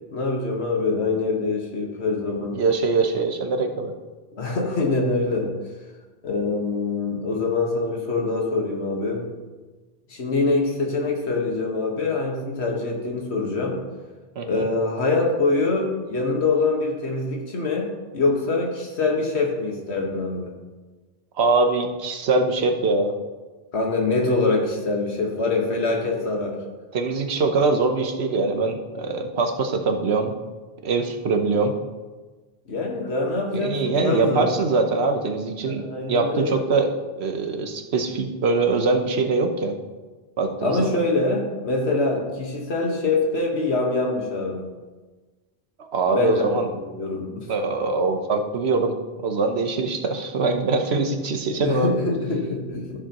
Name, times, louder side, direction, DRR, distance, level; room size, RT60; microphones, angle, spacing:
voice 1, 0.1-2.6 4.3-5.5 6.2-9.3 10.1-13.8 14.4-20.5 23.7-26.6 32.7-34.5 35.6-36.6 40.6-44.6 46.1-47.5 51.6-53.0, left 3 dB, 85° left, 1 dB, 1.7 m, -24 dB
voice 2, 2.5-3.9 14.4-14.6 21.4-23.1 26.9-30.3 30.8-31.7 33.5-35.8 36.1-39.7 40.4-40.9 45.8-46.7 47.5-48.9 49.2-51.9, right 3 dB, 80° right, 6 dB, 1.2 m, -23 dB
13.5 x 6.9 x 3.0 m, 1.3 s
omnidirectional pair, 1.1 m